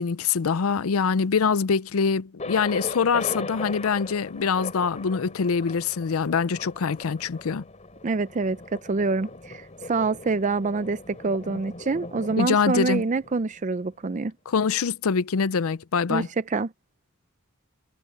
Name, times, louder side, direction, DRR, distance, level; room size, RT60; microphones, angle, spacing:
voice 1, 0.0-7.6 12.4-13.0 14.5-16.3, left 5 dB, 80° left, 0.5 m, -24 dB
Thunder, 2.4-14.2, left 3 dB, 35° left, 3.8 m, -39 dB
voice 2, 8.0-14.3 16.1-16.7, right 3 dB, 35° right, 0.5 m, -26 dB
head